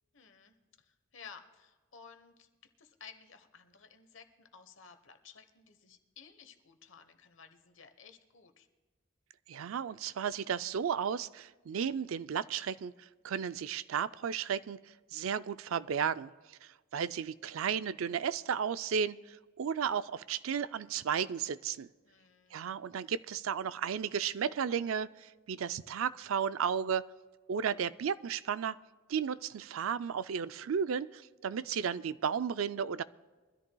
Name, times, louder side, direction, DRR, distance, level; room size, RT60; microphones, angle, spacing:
voice 1, 0.1-2.5 2.8-8.7 22.0-22.7, left 6 dB, 65° left, 7 dB, 1.1 m, -55 dB
voice 2, 9.5-12.9 13.2-14.8 15.1-16.3 16.9-21.9 22.5-27.0 27.5-28.7 29.1-33.0, right 7 dB, 85° right, 15 dB, 0.4 m, -34 dB
23.0 x 13.5 x 2.3 m, 1.3 s
head